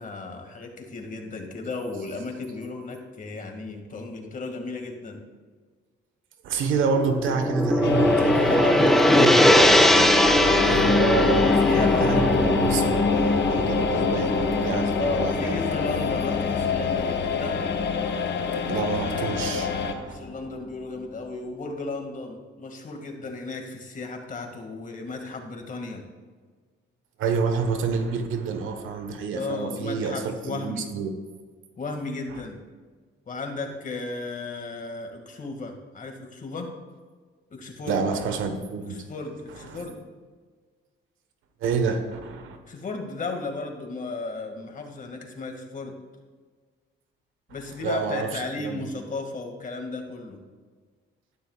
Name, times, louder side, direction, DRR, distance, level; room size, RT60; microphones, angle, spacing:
voice 1, 0.0-5.2 8.3-9.5 11.4-12.5 15.0-17.6 20.0-26.1 29.3-30.9 31.8-32.6 33.3-36.7 37.5-38.0 38.9-40.0 42.7-46.0 47.5-50.4, left 3 dB, 40° left, 3 dB, 2.2 m, -34 dB
voice 2, 6.4-10.3 10.6-15.5 18.7-20.2 27.2-31.1 32.3-32.4 37.9-39.1 39.7-39.8 41.6-42.6 47.8-48.9, right 5 dB, 85° right, 6 dB, 1.4 m, -28 dB
Gong, 6.9-15.2, left 1 dB, ahead, 0.8 m, -21 dB
sound 1, 7.8-19.9, left 6 dB, 60° left, 1.1 m, -28 dB
sound 2, 9.5-20.6 21.0-21.1, left 3 dB, 25° left, 1.1 m, -27 dB
13.5 x 11.5 x 2.5 m, 1.5 s
cardioid pair, 90°, 20 cm